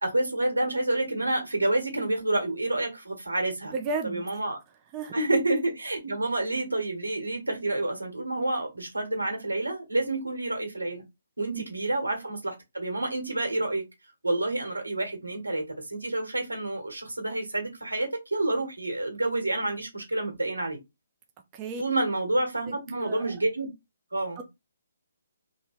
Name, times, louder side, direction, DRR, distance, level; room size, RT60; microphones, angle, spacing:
voice 1, 0.0-3.7 4.0-4.6 5.1-11.0 11.4-13.8 14.2-20.8 21.8-23.7 24.1-24.4, right 2 dB, 90° right, 1.3 m, -28 dB
voice 2, 3.7-4.2 4.9-5.1 11.5-11.6 21.5-21.8 22.7-23.3 24.4-24.5, right 4 dB, 25° right, 0.5 m, -34 dB
2.7 x 2.1 x 3.6 m
figure-of-eight pair, 140°, 0 cm